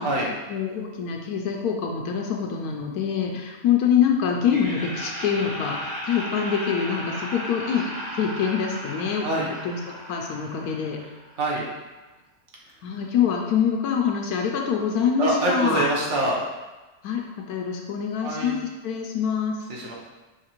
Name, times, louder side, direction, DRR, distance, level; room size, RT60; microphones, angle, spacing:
voice 1, 0.0-7.8 8.1-9.3 9.6-9.8 10.1-11.0 12.8-15.8 17.0-19.6, left 7 dB, 80° left, 1 dB, 1.1 m, -25 dB
Laughter, 4.5-11.4, equal, 15° right, 1.0 m, -35 dB
voice 2, 9.2-9.5 11.4-11.6 15.2-16.4 18.2-18.5 19.7-19.9, right 1 dB, 55° right, -3 dB, 1.2 m, -25 dB
5.7 x 2.9 x 2.9 m, 1.1 s
omnidirectional pair, 1.6 m